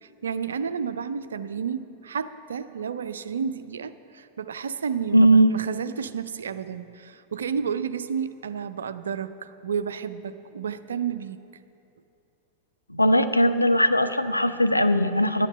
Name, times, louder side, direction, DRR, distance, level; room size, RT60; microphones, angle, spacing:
voice 1, 0.0-11.4, right 7 dB, 70° right, 13 dB, 0.4 m, -31 dB
voice 2, 5.1-5.5 12.9-15.5, equal, 85° left, 10 dB, 0.5 m, -19 dB
11.5 x 9.9 x 6.5 m, 2.8 s
figure-of-eight pair, 90°, 0 cm